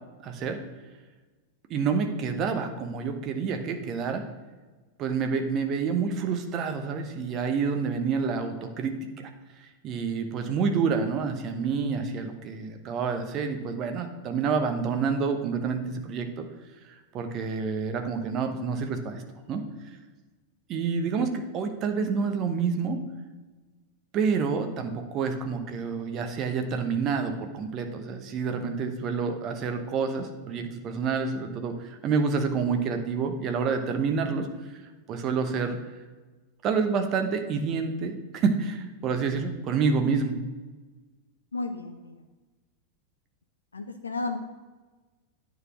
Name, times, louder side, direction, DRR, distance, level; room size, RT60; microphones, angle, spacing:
voice 1, 0.2-0.6 1.7-4.2 5.0-9.3 9.8-16.5 17.1-19.2 19.5-19.6 20.7-23.0 24.1-34.5 35.1-35.8 36.6-40.4, right 5 dB, 35° right, 5 dB, 1.0 m, -28 dB
voice 2, 41.5-42.2 43.7-44.4, left 3 dB, 75° left, 6 dB, 0.5 m, -33 dB
9.5 x 4.1 x 6.1 m, 1.3 s
figure-of-eight pair, 90°, 0 cm